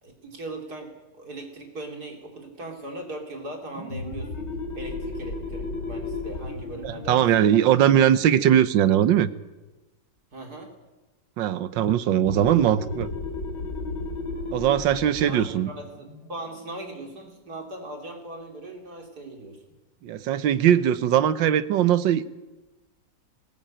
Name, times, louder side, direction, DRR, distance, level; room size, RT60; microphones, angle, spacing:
voice 1, 0.0-0.9 1.2-4.5 4.8-7.3 10.3-10.7 15.2-19.6, right 1 dB, 55° right, 3 dB, 3.8 m, -39 dB
sound 1, 3.7-9.0 12.1-17.4, left 2 dB, 65° left, 3.6 m, -35 dB
voice 2, 6.8-9.3 11.4-13.1 14.5-15.7 20.0-22.3, right 10 dB, 80° right, 15 dB, 1.6 m, -20 dB
19.5 x 18.0 x 9.0 m, 1.1 s
omnidirectional pair, 2.0 m